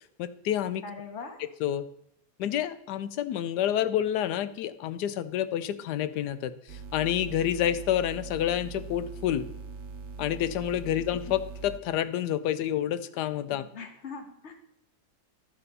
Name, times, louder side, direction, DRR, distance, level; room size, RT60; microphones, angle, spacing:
voice 1, 0.2-0.8 1.6-1.8 2.4-6.5 6.9-9.5 10.2-13.6, left 11 dB, 85° left, 14 dB, 1.2 m, -28 dB
voice 2, 0.8-1.4 10.9-11.0 13.5-14.5, left 5 dB, 50° left, 6 dB, 1.3 m, -41 dB
sound 1, 6.7-11.8, right 4 dB, 60° right, 1.1 m, -41 dB
11.0 x 4.1 x 6.6 m, 0.76 s
omnidirectional pair, 1.7 m